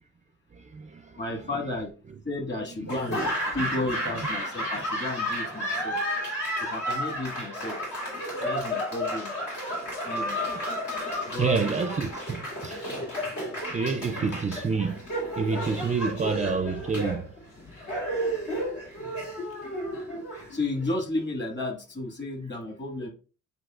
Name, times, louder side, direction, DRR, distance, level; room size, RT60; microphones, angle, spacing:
voice 1, 0.5-1.2 1.5-1.6 2.8-2.9 11.4-12.9 13.7-15.0 15.3-17.3, right 5 dB, 25° right, 0.4 m, -28 dB
voice 2, 1.2-1.9 2.2-3.2 3.5-6.0 6.6-7.8 8.4-9.3 10.0-10.4 11.3-11.6 14.2-14.3 20.5-23.1, left 2 dB, 35° left, 1.9 m, -33 dB
Laughter / Applause, 2.9-20.9, equal, 75° left, 2.7 m, -32 dB
8.0 x 2.7 x 2.4 m
cardioid pair, 90°, 30 cm